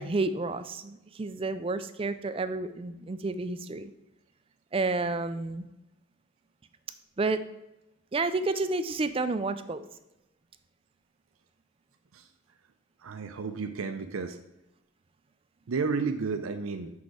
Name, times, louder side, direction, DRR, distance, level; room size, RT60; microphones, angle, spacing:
voice 1, 0.0-3.9 4.7-5.7 7.2-7.4 8.1-9.8, right 3 dB, 25° right, 11 dB, 0.4 m, -30 dB
voice 2, 13.0-14.4 15.7-16.9, right 4 dB, 85° right, 7 dB, 0.5 m, -32 dB
6.4 x 5.7 x 4.7 m, 0.93 s
head